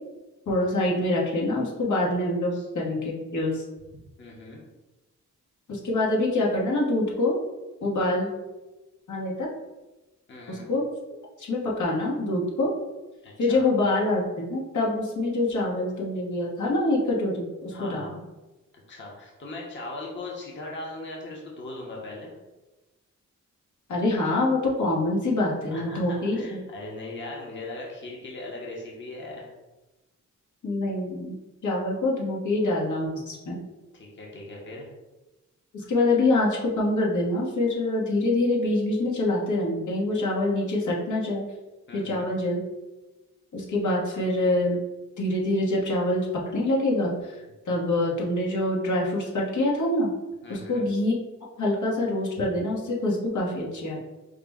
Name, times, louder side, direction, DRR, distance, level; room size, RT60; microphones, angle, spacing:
voice 1, 0.5-3.6 5.7-7.3 7.8-8.3 9.1-9.5 10.5-10.8 11.4-12.7 13.4-18.1 23.9-26.6 30.6-31.3 31.6-33.6 35.7-41.4 41.9-42.6 43.5-44.8 45.2-46.3 46.5-47.4 47.6-50.1 50.5-51.1 51.6-54.0, left 2 dB, 80° left, -4 dB, 1.1 m, -25 dB
voice 2, 4.2-4.6 10.3-10.7 13.2-13.7 17.7-18.1 18.7-22.3 25.7-29.5 33.9-34.9 41.9-42.3 50.4-50.8, left 2 dB, 40° left, -3 dB, 0.8 m, -39 dB
5.0 x 2.1 x 3.4 m, 1.1 s
wide cardioid pair, 130°, 30 cm